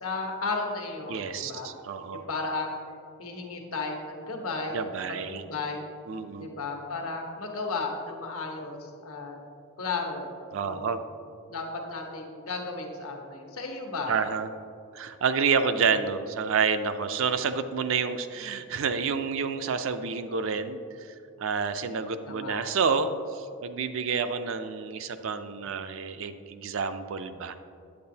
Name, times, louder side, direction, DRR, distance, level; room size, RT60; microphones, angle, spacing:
voice 1, 0.0-1.7 2.1-2.7 3.2-4.9 5.2-5.9 6.4-9.4 9.8-10.3 10.6-11.0 11.5-14.1 22.2-22.6, left 3 dB, 75° left, 2 dB, 1.1 m, -34 dB
voice 2, 1.1-2.3 4.7-5.5 6.1-6.5 10.5-11.0 14.1-14.5 14.9-21.1 21.4-27.6, right 5 dB, 60° right, 10 dB, 0.4 m, -29 dB
8.7 x 8.4 x 2.8 m, 2.5 s
head